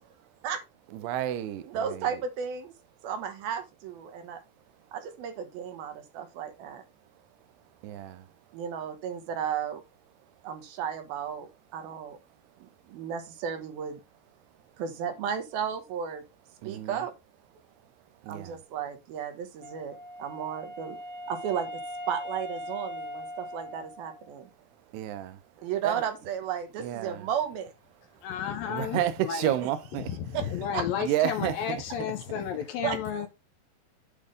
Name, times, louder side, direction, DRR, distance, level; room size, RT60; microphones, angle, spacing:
voice 1, 0.9-2.2 7.8-8.3 16.6-17.0 18.2-18.6 24.9-25.4 25.8-26.0 26.8-27.3 28.1-28.2 28.7-30.1 31.0-31.6, right 12 dB, 90° right, 2.7 m, -31 dB
voice 2, 1.7-2.7 3.0-4.4 4.9-6.8 8.5-9.8 10.4-12.2 12.6-14.0 14.8-16.2 16.6-17.1 18.3-21.0 21.3-21.8 22.1-24.5 25.6-27.7 30.3-30.5 30.7-30.8 32.8-33.0, right 8 dB, 70° right, 2.9 m, -34 dB
Wind instrument woodwind instrument, 19.6-24.4, left 1 dB, 30° right, 1.3 m, -40 dB
voice 3, 28.2-29.6 30.0-33.3, left 8 dB, 75° left, 2.3 m, -32 dB
8.5 x 3.5 x 5.0 m
omnidirectional pair, 4.6 m